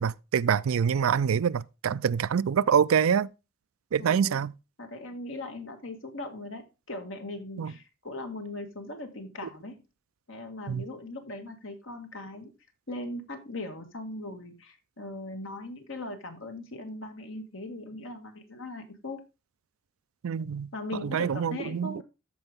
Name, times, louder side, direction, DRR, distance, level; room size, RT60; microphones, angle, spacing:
voice 1, 0.0-3.3 3.9-4.5 7.6-7.7 10.7-10.8 20.2-20.7 21.0-22.0, right 7 dB, 85° right, 0.4 m, -25 dB
voice 2, 4.0-4.3 4.8-9.8 10.3-12.5 12.9-19.2 20.7-22.0, left 2 dB, 65° left, 1.8 m, -39 dB
13.5 x 4.9 x 3.6 m
head